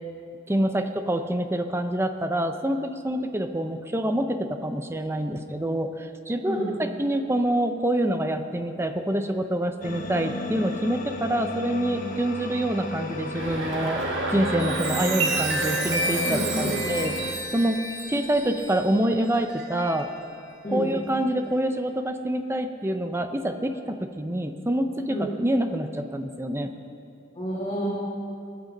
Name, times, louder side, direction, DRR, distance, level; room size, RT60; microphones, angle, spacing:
voice 1, 0.5-14.0 14.3-17.8 18.1-20.1 20.7-26.7, right 1 dB, 15° right, 7 dB, 0.6 m, -26 dB
voice 2, 6.4-6.8 16.2-16.8 20.6-20.9 25.1-25.3 27.4-27.9, right 1 dB, 30° left, -7 dB, 1.9 m, -29 dB
Colder Light, 9.8-17.3, left 2 dB, 45° left, 1.0 m, -34 dB
Chuckle chortle, 13.3-17.1, right 2 dB, 85° right, 1.9 m, -32 dB
Chime, 14.3-20.3 20.9-21.2, right 2 dB, 65° right, 2.0 m, -31 dB
19.0 x 6.5 x 7.4 m, 2.5 s
head